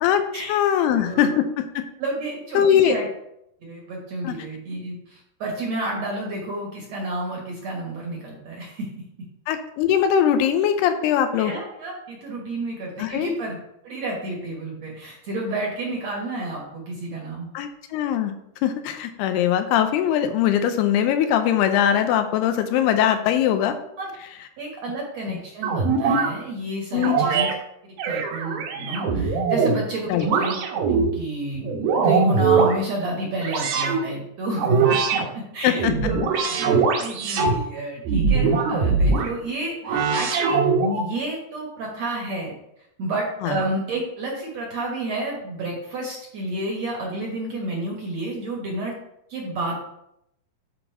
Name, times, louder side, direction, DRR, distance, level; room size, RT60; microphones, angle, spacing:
voice 1, 0.0-1.9 2.5-3.0 4.2-4.4 9.5-11.5 13.0-13.3 17.5-18.3 18.6-23.7 25.3-25.4 26.9-27.2 30.1-30.3 35.6-35.9 43.4-43.6, left 9 dB, 85° left, 8 dB, 2.7 m, -21 dB
voice 2, 1.0-1.4 2.0-3.1 3.6-8.9 11.4-13.6 13.8-17.5 24.0-24.1 24.6-27.5 28.0-30.5 30.9-36.2 36.5-40.6 40.9-42.5 43.0-49.0 49.3-49.7, right 1 dB, 55° right, -1 dB, 2.0 m, -30 dB
sound 1, 25.6-26.3 27.0-27.5 28.0-29.8 30.2-31.1 31.6-32.8 33.4-34.0 34.6-35.2 35.7-37.6 38.1-39.3 39.8-41.1, right 5 dB, 70° right, 2.8 m, -21 dB
10.5 x 4.2 x 4.6 m, 0.79 s
omnidirectional pair, 4.6 m